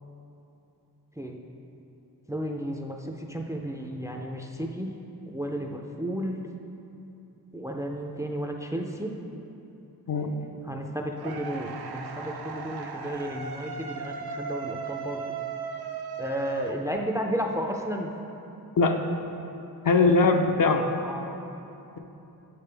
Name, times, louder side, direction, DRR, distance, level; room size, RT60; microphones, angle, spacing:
voice 1, 2.3-4.9 5.3-6.4 7.5-9.1 10.7-15.2 16.2-18.1 20.9-21.4, equal, 10° right, 2 dB, 0.4 m, -33 dB
sound 1, 11.2-17.3, right 5 dB, 80° right, 0.6 m, -37 dB
voice 2, 19.8-20.9, left 3 dB, 60° left, 4 dB, 0.6 m, -21 dB
8.1 x 6.8 x 3.3 m, 2.9 s
wide cardioid pair, 130°, 37 cm